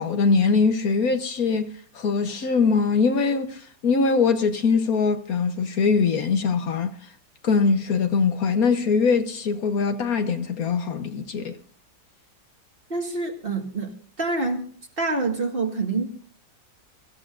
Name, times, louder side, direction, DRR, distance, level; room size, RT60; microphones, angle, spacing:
voice 1, 0.0-7.1 7.4-11.6, left 5 dB, 60° left, 1.4 m, -22 dB
voice 2, 12.9-14.6 15.0-16.1, right 3 dB, 35° right, 1.9 m, -26 dB
24.0 x 14.5 x 2.5 m
omnidirectional pair, 1.8 m